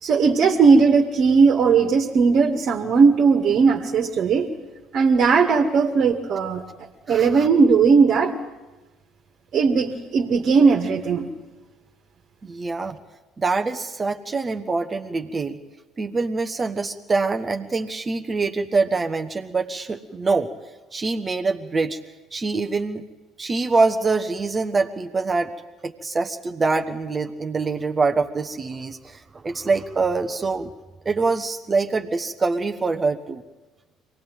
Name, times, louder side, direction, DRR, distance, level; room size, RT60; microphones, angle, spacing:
voice 1, 0.0-4.5 4.9-6.6 7.1-8.3 9.5-11.3, right 5 dB, 45° right, 3 dB, 2.0 m, -17 dB
voice 2, 7.1-7.5 12.4-13.0 13.4-15.6 16.0-20.5 20.9-22.0 22.3-23.0 23.4-25.5 25.8-30.7 31.0-33.4, right 3 dB, 25° right, 7 dB, 1.3 m, -24 dB
24.5 x 19.0 x 9.2 m, 1.2 s
figure-of-eight pair, 55°, 0 cm